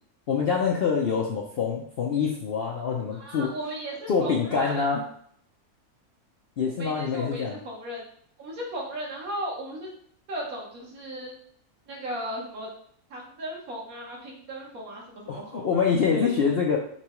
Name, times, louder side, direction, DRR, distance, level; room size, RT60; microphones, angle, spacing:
voice 1, 0.3-3.5 4.1-5.0 6.6-7.6 15.3-16.8, left 6 dB, 65° left, -1 dB, 0.6 m, -25 dB
voice 2, 3.1-4.9 6.8-8.0 8.4-9.9 10.3-11.3 11.9-12.7 13.1-16.5, right 1 dB, 65° right, -3 dB, 1.5 m, -36 dB
7.0 x 2.3 x 3.0 m, 0.63 s
omnidirectional pair, 1.6 m